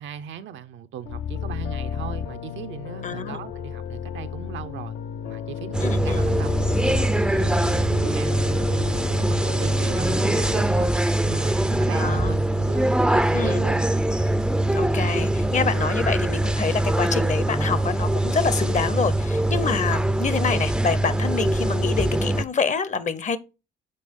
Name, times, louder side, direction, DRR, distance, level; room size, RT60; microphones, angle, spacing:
voice 1, 0.0-5.0 5.2-10.9 11.2-13.9, right 9 dB, 75° right, 0.6 m, -38 dB
sound 1, 1.1-10.7, left 8 dB, 80° left, 0.6 m, -33 dB
voice 2, 3.0-3.4 5.8-6.2 12.0-12.3 13.3-13.7 14.8-23.4, left 5 dB, 40° left, 0.7 m, -26 dB
sound 2, 5.7-22.4, right 1 dB, 5° right, 0.4 m, -23 dB
6.6 x 4.2 x 3.6 m
cardioid pair, 90°, 20 cm